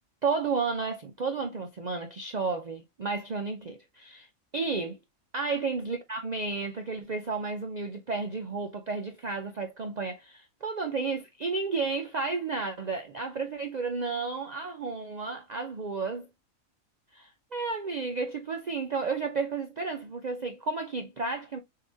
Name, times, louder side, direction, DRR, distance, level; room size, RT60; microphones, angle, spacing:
voice 1, 0.2-4.3 4.5-5.0 5.3-16.3 17.1-21.6, right 4 dB, 70° right, 0.4 m, -32 dB
6.5 x 2.9 x 2.6 m
omnidirectional pair, 1.5 m